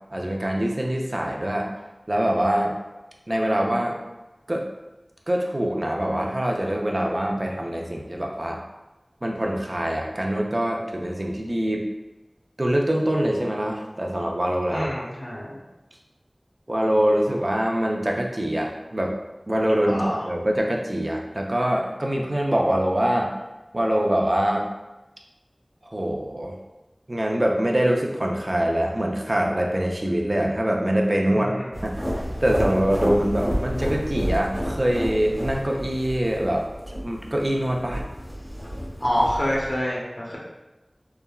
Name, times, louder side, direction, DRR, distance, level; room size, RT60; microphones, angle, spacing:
voice 1, 0.1-1.7 2.1-2.8 3.3-4.0 4.5-4.7 5.3-8.6 9.2-11.9 12.6-15.1 16.7-19.1 19.5-23.3 23.7-24.7 25.9-26.6 27.1-31.5 31.8-36.7 37.0-38.0, right 1 dB, 50° right, 0 dB, 0.4 m, -24 dB
voice 2, 14.7-15.6 19.9-20.2 31.4-31.5 39.0-40.4, equal, 60° left, -5 dB, 0.6 m, -26 dB
sound 1, 31.7-39.8, equal, 10° right, 0.8 m, -30 dB
3.2 x 2.1 x 2.2 m, 1.1 s
wide cardioid pair, 40°, 0 cm